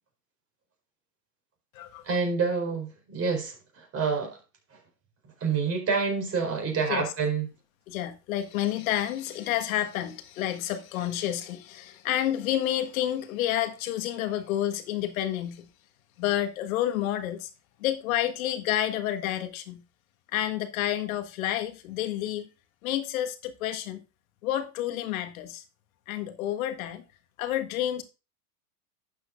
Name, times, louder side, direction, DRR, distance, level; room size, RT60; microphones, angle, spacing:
voice 1, 2.0-4.4 4.7-4.8 5.4-7.5, right 5 dB, 30° right, 4.2 m, -28 dB
voice 2, 7.9-15.7 16.2-17.5 17.8-19.8 20.3-22.5 22.8-24.0 24.4-25.6 26.1-27.0 27.4-28.0, left 12 dB, 65° left, 1.6 m, -29 dB
11.5 x 7.9 x 2.5 m
hypercardioid pair, 110°, 45 cm